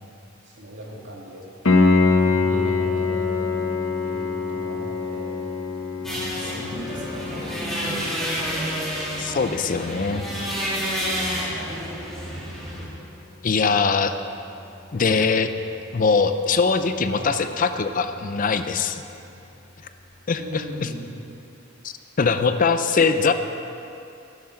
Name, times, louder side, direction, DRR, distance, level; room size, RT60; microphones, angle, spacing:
voice 1, 0.4-1.4 2.2-3.7 4.0-5.4 6.0-8.2 11.4-11.9 17.1-17.3 19.3-19.4 20.4-21.2 23.0-23.3, equal, 65° right, -3 dB, 2.3 m, -39 dB
Piano, 1.6-12.3 15.6-15.7, left 4 dB, 85° left, 1.0 m, -25 dB
Bass guitar, 2.5-6.6, right 1 dB, 30° right, 1.0 m, -41 dB
sound 1, 6.0-12.9, equal, ahead, 2.6 m, -29 dB
voice 2, 9.2-10.2 13.4-14.2 14.9-15.5 15.9-19.0 20.3-20.9 22.2-23.3, left 5 dB, 40° left, 10 dB, 0.5 m, -22 dB
11.5 x 10.5 x 5.8 m, 2.7 s
head